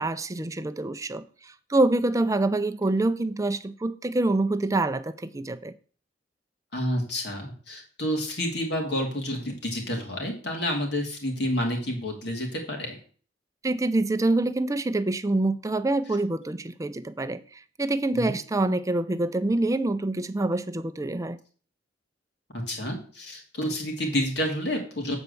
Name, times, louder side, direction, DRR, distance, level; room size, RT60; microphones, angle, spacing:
voice 1, 0.0-5.7 13.6-21.4, right 2 dB, 20° right, 0.5 m, -26 dB
voice 2, 6.7-13.0 18.1-18.4 22.7-25.2, equal, 65° left, 2.6 m, -29 dB
8.1 x 4.5 x 6.8 m
head